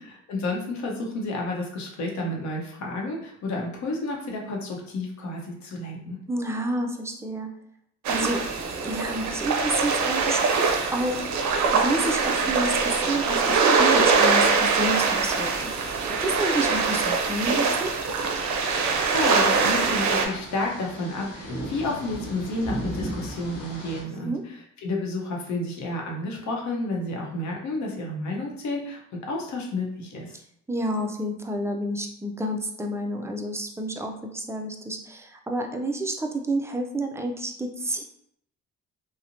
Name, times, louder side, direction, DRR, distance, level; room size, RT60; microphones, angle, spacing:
voice 1, 0.0-6.2 19.0-30.4, left 2 dB, 70° left, 0 dB, 0.7 m, -31 dB
voice 2, 6.3-7.5 8.1-8.4 8.7-10.4 10.9-15.7 16.2-17.9 24.2-24.4 30.7-38.0, right 1 dB, 10° right, 3 dB, 0.3 m, -29 dB
sound 1, 8.0-20.3, right 4 dB, 70° right, 0.5 m, -23 dB
sound 2, 18.8-24.0, equal, 90° left, 1.0 m, -37 dB
2.8 x 2.0 x 2.5 m, 0.70 s
cardioid pair, 90°, 30 cm